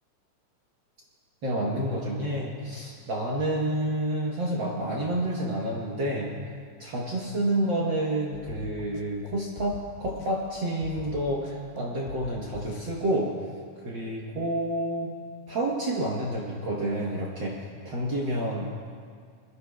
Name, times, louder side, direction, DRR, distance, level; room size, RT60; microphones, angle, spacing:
voice 1, 1.4-6.3 6.8-13.3 13.8-15.1 15.5-18.7, right 1 dB, 90° right, -3 dB, 1.0 m, -29 dB
sound 1, 8.3-9.3 9.6-10.5 10.8-11.8 12.1-13.0, left 5 dB, 80° left, 2.4 m, -42 dB
24.0 x 13.5 x 2.3 m, 2.1 s
omnidirectional pair, 3.9 m